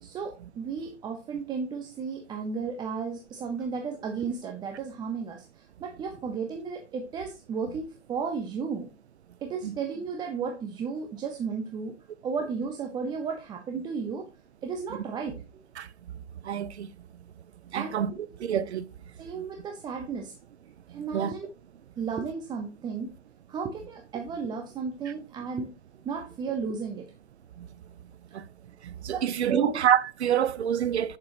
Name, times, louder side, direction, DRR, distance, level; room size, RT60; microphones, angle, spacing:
voice 1, 0.0-8.9 9.4-11.9 12.2-14.3 14.6-15.6 17.7-18.0 19.2-20.3 20.9-21.5 22.0-23.1 23.5-25.7 26.0-27.1 29.1-29.7, right 5 dB, 10° right, 0.6 m, -34 dB
voice 2, 16.5-16.9 17.7-18.1 18.4-18.8 21.1-21.3 29.0-31.2, right 9 dB, 65° right, 0.7 m, -26 dB
7.9 x 7.4 x 2.7 m
figure-of-eight pair, 115°, 36 cm